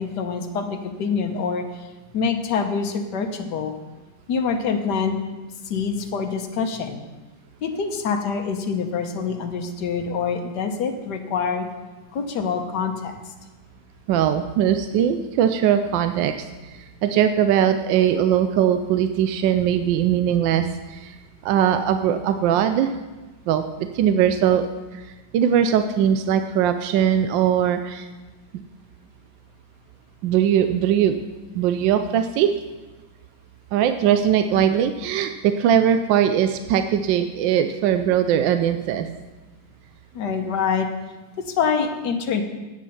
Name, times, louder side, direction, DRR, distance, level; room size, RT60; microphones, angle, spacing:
voice 1, 0.0-1.9 2.1-3.7 4.3-5.2 5.7-7.0 7.6-11.7 12.1-13.2 40.1-40.9 41.4-42.4, left 5 dB, 65° left, 5 dB, 1.5 m, -25 dB
voice 2, 14.1-21.2 21.4-22.9 23.5-25.1 25.3-28.1 30.2-31.2 31.5-32.5 33.7-39.1, right 9 dB, 80° right, 8 dB, 1.3 m, -20 dB
9.6 x 8.5 x 5.5 m, 1.2 s
omnidirectional pair, 2.0 m